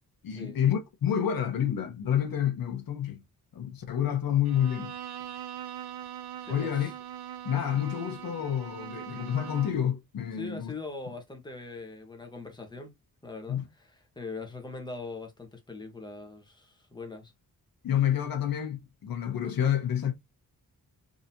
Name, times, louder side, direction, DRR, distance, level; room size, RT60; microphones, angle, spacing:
voice 1, 0.2-3.2 3.5-5.0 6.5-6.9 7.4-10.7 13.5-13.7 17.8-20.1, left 9 dB, 70° left, 0.9 m, -28 dB
Bowed string instrument, 4.4-9.9, right 10 dB, 85° right, 0.6 m, -41 dB
voice 2, 6.4-6.9 10.4-12.9 13.2-17.3, left 3 dB, 10° left, 1.0 m, -41 dB
3.8 x 2.8 x 2.7 m
wide cardioid pair, 145°, 36 cm